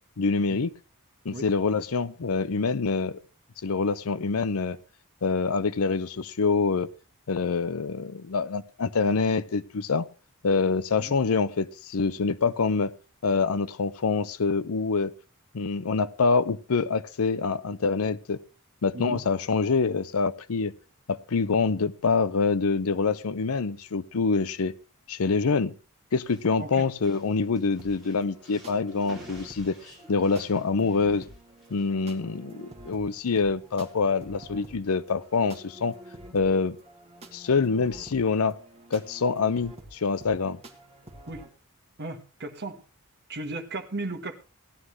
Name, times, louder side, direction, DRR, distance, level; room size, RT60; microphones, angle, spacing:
voice 1, 0.2-0.7 1.2-3.2 3.6-4.8 5.2-6.9 7.3-10.0 10.4-12.9 13.2-15.1 15.5-18.4 18.8-20.7 21.1-24.8 25.1-25.7 26.1-29.8 30.1-31.3 31.7-35.9 36.3-36.8 37.3-38.6 38.9-40.6, left 4 dB, 70° left, 0.6 m, -25 dB
sound 1, 26.2-31.9, right 1 dB, ahead, 5.7 m, -52 dB
sound 2, 27.8-41.5, right 1 dB, 30° right, 2.0 m, -48 dB
voice 2, 42.0-42.8 43.3-44.4, right 2 dB, 50° right, 1.3 m, -36 dB
17.0 x 11.5 x 3.1 m
head